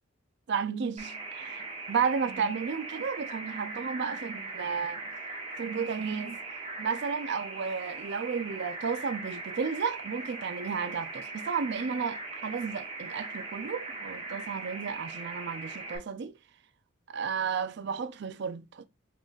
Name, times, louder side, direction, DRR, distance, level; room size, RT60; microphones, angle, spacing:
voice 1, 0.5-5.0 5.6-16.3 17.1-18.9, right 6 dB, 60° right, 0.4 m, -33 dB
sound 1, 1.0-16.0, right 3 dB, 30° right, 0.9 m, -40 dB
3.9 x 3.7 x 2.4 m
head